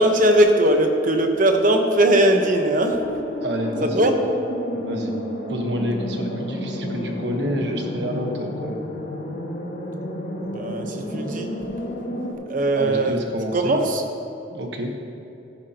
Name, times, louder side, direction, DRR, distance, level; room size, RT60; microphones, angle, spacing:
voice 1, 0.0-3.0 3.8-4.2 10.4-11.5 12.5-13.2 13.5-14.0, right 1 dB, 50° right, 4 dB, 1.0 m, -19 dB
sound 1, 2.1-12.3, equal, 85° left, 1.8 m, -31 dB
voice 2, 3.4-4.1 4.7-5.2 5.5-8.9 12.7-13.8 14.5-15.0, equal, 70° right, 2 dB, 1.2 m, -28 dB
14.5 x 10.5 x 2.9 m, 2.9 s
head